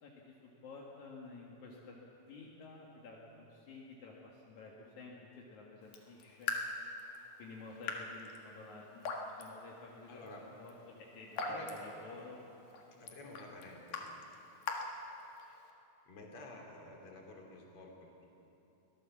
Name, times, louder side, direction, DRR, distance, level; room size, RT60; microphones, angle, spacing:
voice 1, 0.0-2.0 2.2-6.5 7.4-9.1 9.4-10.3 10.6-12.4, left 3 dB, 70° left, -3 dB, 3.2 m, -52 dB
Raindrop / Drip, 5.8-15.7, left 3 dB, 85° left, 3.3 m, -44 dB
voice 2, 10.1-10.5 11.4-11.8 13.0-14.1 16.1-18.3, left 2 dB, 45° left, 0 dB, 3.9 m, -50 dB
23.5 x 17.0 x 7.4 m, 2.9 s
omnidirectional pair, 3.6 m